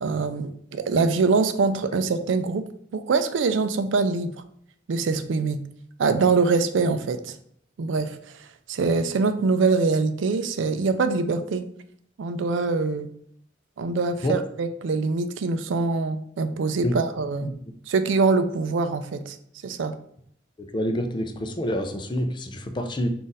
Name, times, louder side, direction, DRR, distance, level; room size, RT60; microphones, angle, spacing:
voice 1, 0.0-2.6 2.9-4.3 4.9-5.6 6.0-7.3 7.8-8.2 8.7-11.6 12.2-13.1 13.8-17.5 17.9-19.4 19.6-19.9, right 4 dB, 70° right, 10 dB, 0.4 m, -24 dB
voice 2, 20.7-23.1, equal, 25° left, 6 dB, 0.4 m, -27 dB
3.8 x 2.5 x 3.9 m, 0.66 s
head